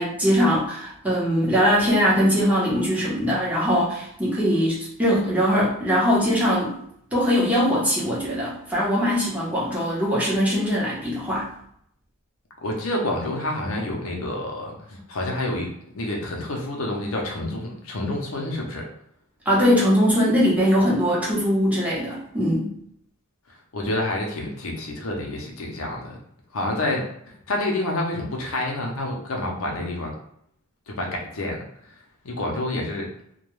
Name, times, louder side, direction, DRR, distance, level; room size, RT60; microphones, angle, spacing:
voice 1, 0.0-6.8 7.1-11.5 19.5-22.7, equal, 5° right, -7 dB, 0.8 m, -21 dB
voice 2, 12.6-15.7 15.9-18.9 23.7-26.2 26.5-27.1 27.5-30.1 30.9-31.6 32.2-33.1, left 1 dB, 75° left, 0 dB, 0.6 m, -28 dB
2.2 x 2.2 x 3.0 m, 0.71 s
head